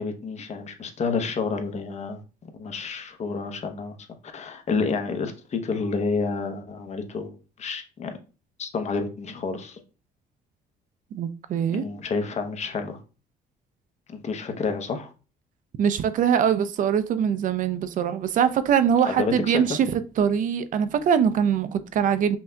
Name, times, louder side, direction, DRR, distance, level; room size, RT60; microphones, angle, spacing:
voice 1, 0.0-2.2 2.6-4.0 4.3-8.2 8.6-9.8 11.7-13.0 14.1-15.1 19.1-19.8, left 4 dB, 40° left, 0.8 m, -29 dB
voice 2, 11.1-11.9 15.8-22.4, right 8 dB, 50° right, 0.4 m, -23 dB
5.6 x 2.7 x 2.2 m
cardioid pair, 110°, 17 cm